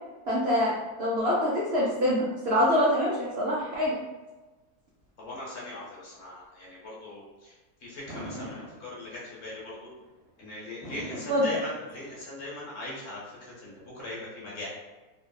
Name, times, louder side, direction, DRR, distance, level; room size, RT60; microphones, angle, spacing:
voice 1, 0.3-0.7 1.0-4.0 11.3-11.5, equal, 75° right, -6 dB, 0.6 m, -25 dB
voice 2, 5.2-7.5 7.8-9.9 10.4-14.7, left 2 dB, 50° left, -6 dB, 1.0 m, -40 dB
Fireworks, 8.1-9.4 10.8-12.4, equal, 25° left, 0.8 m, -42 dB
3.3 x 2.0 x 2.2 m, 1.2 s
omnidirectional pair, 1.7 m